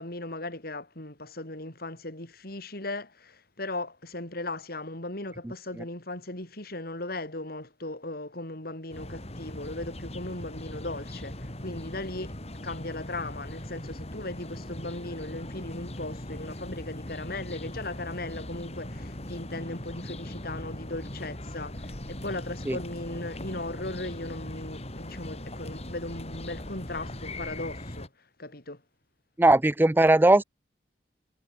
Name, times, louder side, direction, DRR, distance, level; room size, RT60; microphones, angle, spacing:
voice 1, 0.0-12.4 12.6-28.1 28.4-28.8, left 2 dB, 60° left, 5.9 m, -37 dB
sound 1, 8.9-28.1, left 1 dB, 40° left, 5.4 m, -40 dB
voice 2, 29.4-30.4, right 2 dB, 10° right, 0.5 m, -19 dB
head